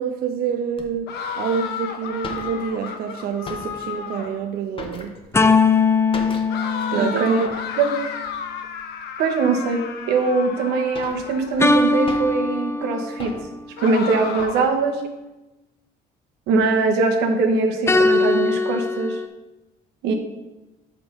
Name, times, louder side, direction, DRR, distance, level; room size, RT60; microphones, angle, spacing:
voice 1, 0.0-5.1 6.9-7.5 14.5-14.6, right 7 dB, 60° right, 6 dB, 0.5 m, -27 dB
sound 1, 0.8-0.9 1.6-1.7 1.8-1.9 2.1-2.9 3.2-4.0 4.4-5.5 6.1-6.7 7.0-7.1 7.5-7.6 8.3-8.8 9.3-9.4 10.1-10.2 10.6-12.5 13.2-13.7 14.1-14.6, left 3 dB, 30° left, 1.0 m, -38 dB
sound 2, 1.1-4.5 6.5-11.8 13.8-14.8, left 7 dB, 75° left, 0.8 m, -33 dB
sound 3, 5.3-7.9 11.6-13.4 17.9-19.3, left 3 dB, 15° left, 0.4 m, -20 dB
voice 2, 6.9-7.3 7.8-7.9 9.2-9.8 10.1-13.5 13.8-15.0 16.5-19.2 20.0-20.1, right 4 dB, 90° right, 4 dB, 1.2 m, -21 dB
6.0 x 5.2 x 5.4 m, 1.0 s
cardioid pair, 110°, 17 cm